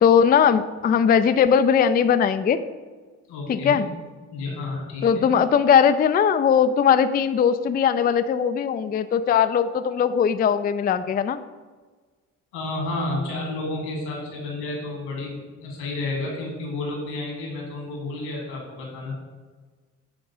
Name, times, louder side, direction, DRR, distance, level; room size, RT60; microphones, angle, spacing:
voice 1, 0.0-2.6 3.5-3.9 5.0-11.4, left 7 dB, 25° left, 11 dB, 0.3 m, -19 dB
voice 2, 3.3-3.8 4.3-5.3 12.5-19.2, left 2 dB, 85° left, -1 dB, 2.0 m, -31 dB
7.9 x 3.8 x 5.5 m, 1.4 s
hypercardioid pair, 50°, 40 cm